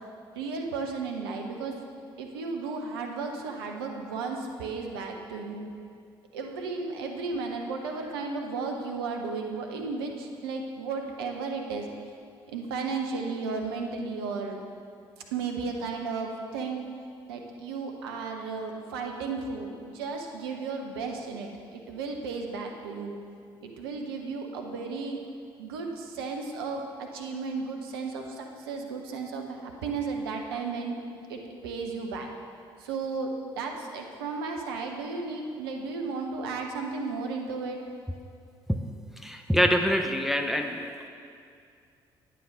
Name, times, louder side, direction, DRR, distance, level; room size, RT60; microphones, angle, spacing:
voice 1, 0.3-1.9 2.2-5.7 6.3-11.9 12.5-14.6 15.2-16.9 17.3-23.1 23.6-25.2 25.6-32.3 32.8-37.8, right 4 dB, 80° right, 2 dB, 0.8 m, -34 dB
voice 2, 39.2-41.1, equal, ahead, 4 dB, 0.7 m, -25 dB
9.4 x 6.9 x 5.1 m, 2.4 s
hypercardioid pair, 45°, 12 cm